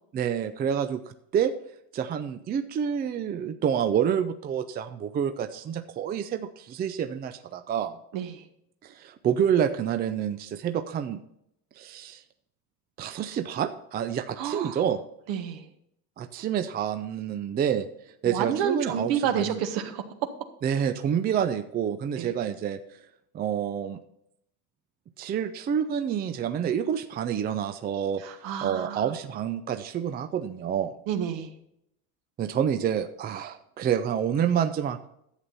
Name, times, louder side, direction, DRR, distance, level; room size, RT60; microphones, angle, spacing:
voice 1, 0.1-1.0 1.3-1.5 1.9-7.9 8.8-11.2 11.8-12.2 13.0-15.0 16.2-17.9 18.2-19.6 20.6-22.8 23.3-24.0 25.2-28.2 28.6-30.9 32.4-35.1, right 8 dB, 25° right, 8 dB, 0.5 m, -28 dB
voice 2, 8.1-8.4 14.4-14.8 15.3-15.6 18.2-20.0 22.2-22.3 28.2-29.1 31.1-31.5, right 8 dB, 65° right, 7 dB, 1.5 m, -29 dB
11.0 x 7.9 x 4.1 m, 0.75 s
supercardioid pair, 130°, 40 cm